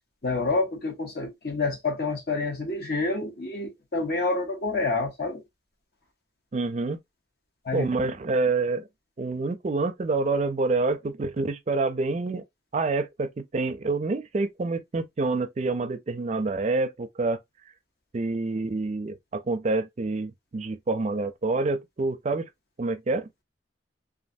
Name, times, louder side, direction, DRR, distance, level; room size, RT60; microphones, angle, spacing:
voice 1, 0.2-5.4 7.6-7.9, left 3 dB, 60° left, 1.1 m, -28 dB
voice 2, 6.5-7.0 7.7-8.9 9.2-12.4 12.7-17.4 18.1-22.5 22.8-23.3, right 3 dB, 40° right, 0.4 m, -27 dB
3.1 x 2.5 x 2.6 m
head